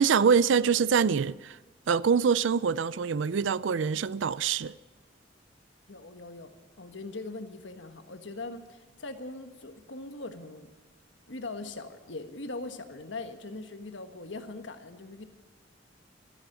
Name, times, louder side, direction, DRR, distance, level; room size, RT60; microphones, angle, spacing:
voice 1, 0.0-1.6 1.9-4.7, right 6 dB, 75° right, 0.4 m, -24 dB
voice 2, 5.9-10.7 11.3-15.3, left 2 dB, 70° left, 1.4 m, -41 dB
14.0 x 10.5 x 9.0 m
head